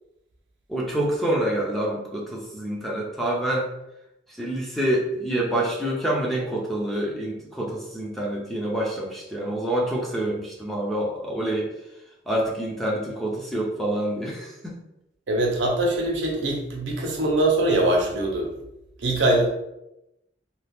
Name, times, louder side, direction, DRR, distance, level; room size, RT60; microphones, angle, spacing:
voice 1, 0.7-3.7 4.3-11.7 12.3-14.8, right 1 dB, ahead, -3 dB, 0.6 m, -27 dB
voice 2, 15.3-18.5 19.0-19.5, right 1 dB, 90° right, 0 dB, 0.7 m, -22 dB
2.8 x 2.3 x 3.3 m, 0.89 s
head